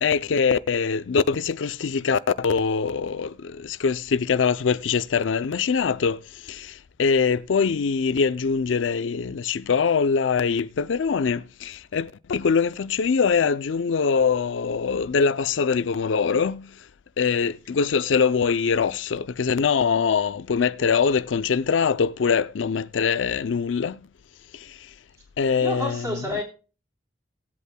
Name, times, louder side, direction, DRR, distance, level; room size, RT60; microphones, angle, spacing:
voice 1, 0.0-16.7 17.2-24.0 24.5-24.8 25.4-26.4, left 5 dB, 85° left, 0.5 m, -23 dB
voice 2, 25.6-26.4, left 1 dB, 20° right, 3.3 m, -29 dB
18.5 x 8.2 x 2.2 m
head